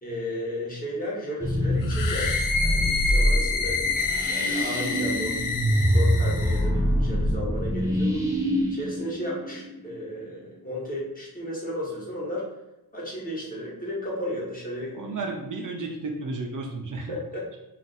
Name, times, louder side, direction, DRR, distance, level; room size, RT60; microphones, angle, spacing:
voice 1, 0.0-2.3 2.6-3.8 4.1-5.4 5.7-8.2 8.7-12.5 12.9-15.2 17.1-17.6, equal, 20° left, -6 dB, 1.1 m, -34 dB
sound 1, 1.4-10.0, equal, 10° right, 0.5 m, -25 dB
sound 2, 1.8-6.7, left 4 dB, 55° left, 0.5 m, -28 dB
voice 2, 14.9-17.2, right 3 dB, 55° right, 1 dB, 0.5 m, -33 dB
2.5 x 2.5 x 3.9 m, 0.94 s
wide cardioid pair, 105°, 38 cm